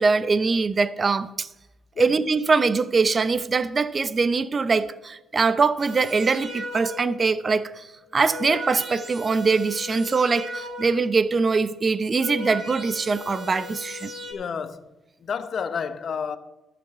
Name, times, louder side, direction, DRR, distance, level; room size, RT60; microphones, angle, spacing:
voice 1, 0.0-1.5 2.0-14.1, right 4 dB, 35° right, 0.7 m, -23 dB
sound 1, 5.8-7.3 8.0-11.2 11.9-14.3, left 1 dB, 55° right, 3.2 m, -37 dB
voice 2, 14.3-14.8 15.2-16.4, left 6 dB, 50° left, 0.9 m, -30 dB
12.5 x 7.0 x 6.8 m
cardioid pair, 90°, 0 cm